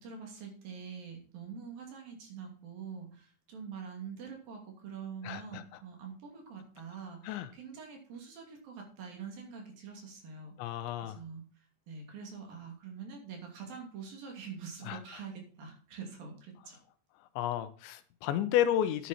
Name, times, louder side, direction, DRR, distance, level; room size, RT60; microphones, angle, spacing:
voice 1, 0.0-10.8 11.0-11.4 11.9-16.8, right 6 dB, 55° right, 1 dB, 4.2 m, -45 dB
voice 2, 5.2-5.6 7.2-7.5 10.6-11.2 14.9-15.0 17.4-19.1, left 11 dB, 90° left, 12 dB, 3.2 m, -31 dB
11.0 x 9.4 x 4.3 m, 0.44 s
omnidirectional pair, 5.2 m